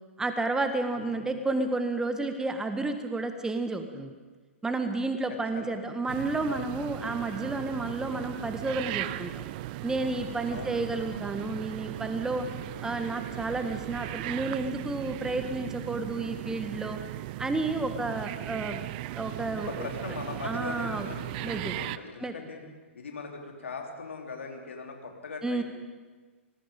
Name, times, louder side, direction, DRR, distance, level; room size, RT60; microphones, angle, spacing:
voice 1, 0.2-4.1 4.6-9.4 9.8-12.5 12.8-17.0 17.4-18.9 19.2-19.9 20.4-21.1 21.4-21.7 22.2-22.3 25.4-25.6, right 3 dB, 10° right, 7 dB, 1.6 m, -31 dB
voice 2, 1.0-1.3 5.3-5.7 10.5-10.9 19.6-22.6 23.0-25.6, left 4 dB, 75° left, 2 dB, 3.6 m, -40 dB
sound 1, 6.1-22.0, right 16 dB, 45° right, 0.7 m, -37 dB
25.0 x 20.0 x 5.3 m, 1.3 s
figure-of-eight pair, 110°, 7 cm